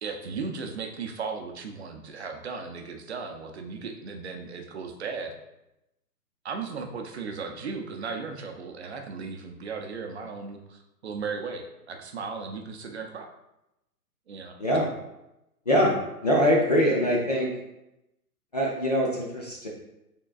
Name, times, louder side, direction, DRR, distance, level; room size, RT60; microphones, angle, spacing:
voice 1, 0.0-5.3 6.4-13.3 14.3-14.6, right 5 dB, 45° right, 4 dB, 0.6 m, -36 dB
voice 2, 16.2-17.5 18.5-19.7, equal, 30° left, -3 dB, 0.4 m, -23 dB
6.0 x 3.7 x 2.4 m, 0.89 s
figure-of-eight pair, 135°, 48 cm